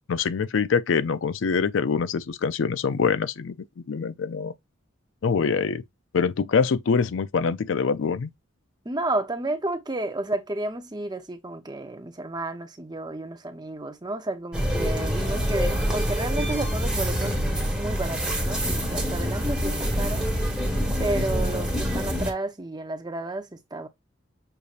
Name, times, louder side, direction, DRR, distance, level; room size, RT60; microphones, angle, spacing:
voice 1, 0.1-4.5 5.2-5.8 6.1-8.3, left 5 dB, 65° left, 0.4 m, -24 dB
voice 2, 8.8-17.4 17.7-20.3 21.0-23.9, right 2 dB, 20° right, 0.7 m, -31 dB
sound 1, 14.5-22.3, equal, 5° right, 1.2 m, -26 dB
6.7 x 2.7 x 2.4 m
head